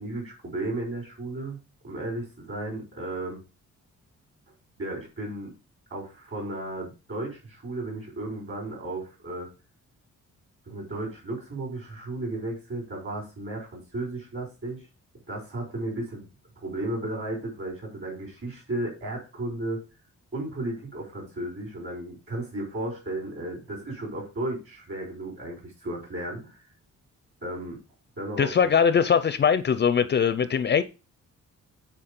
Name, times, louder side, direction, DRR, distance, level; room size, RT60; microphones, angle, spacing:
voice 1, 0.0-1.6 1.8-3.4 4.8-5.5 5.9-9.5 10.7-14.8 15.3-16.2 16.6-19.8 20.3-26.6 27.4-27.8 28.2-28.7, right 1 dB, 45° right, 5.3 m, -34 dB
voice 2, 28.4-30.8, left 7 dB, 35° left, 0.4 m, -21 dB
8.6 x 4.6 x 5.2 m
wide cardioid pair, 175°, 30 cm